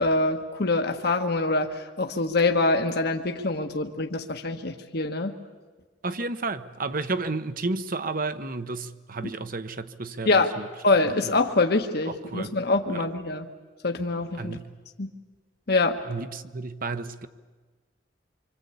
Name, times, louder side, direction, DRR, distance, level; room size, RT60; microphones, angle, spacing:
voice 1, 0.0-5.3 10.2-10.5 10.8-13.5 13.8-14.6 15.0-15.1 15.7-16.0, left 2 dB, 60° left, 1.4 m, -24 dB
voice 2, 6.0-10.7 11.2-11.3 12.1-12.5 12.9-13.0 14.4-14.7 16.1-17.3, right 3 dB, 50° right, 1.1 m, -32 dB
25.5 x 25.5 x 8.4 m
head